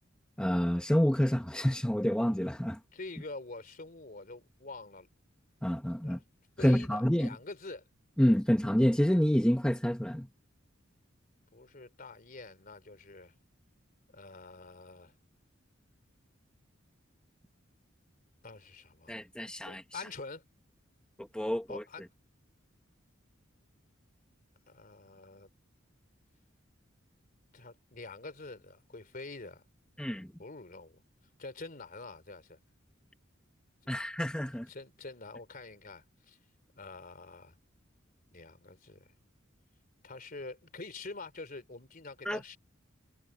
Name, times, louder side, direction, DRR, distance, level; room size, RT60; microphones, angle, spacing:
voice 1, 0.4-2.8 5.6-6.2 6.6-7.3 8.2-10.3 19.1-20.0 21.2-21.8 30.0-30.3 33.9-34.7 42.2-42.4, equal, 5° left, 0.9 m, -28 dB
voice 2, 2.9-5.1 6.0-6.2 6.6-7.8 11.5-13.3 14.1-15.1 18.4-19.2 19.6-20.4 21.7-22.0 24.7-25.5 27.5-29.6 30.4-31.0 31.4-32.6 34.7-36.4 36.7-37.6 38.3-39.1 40.0-42.6, left 3 dB, 45° left, 3.1 m, -46 dB
head